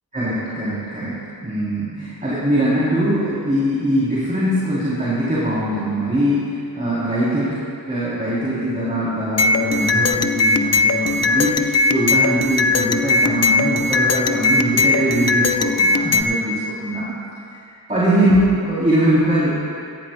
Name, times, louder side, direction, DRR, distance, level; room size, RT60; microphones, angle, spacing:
voice 1, 0.1-1.2 1.4-7.6 7.9-11.6 11.9-17.1 17.7-19.5, right 1 dB, 20° right, -9 dB, 3.1 m, -21 dB
sound 1, 9.4-16.2, left 3 dB, 35° left, 0.6 m, -18 dB
18.0 x 14.5 x 2.2 m, 2.5 s
wide cardioid pair, 60°, 43 cm